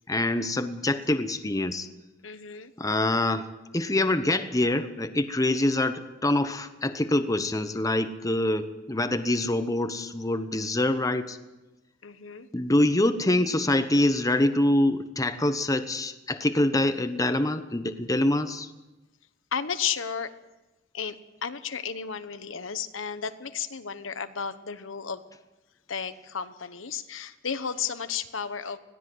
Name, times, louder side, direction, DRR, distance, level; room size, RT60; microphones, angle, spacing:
voice 1, 0.1-1.9 2.8-3.5 3.7-11.4 12.5-18.7, left 1 dB, 20° left, 10 dB, 1.0 m, -25 dB
voice 2, 2.2-2.7 12.0-12.5 19.5-20.3 20.9-25.2 25.9-28.8, left 7 dB, 90° left, 11 dB, 1.1 m, -33 dB
21.0 x 15.5 x 7.9 m, 1.1 s
head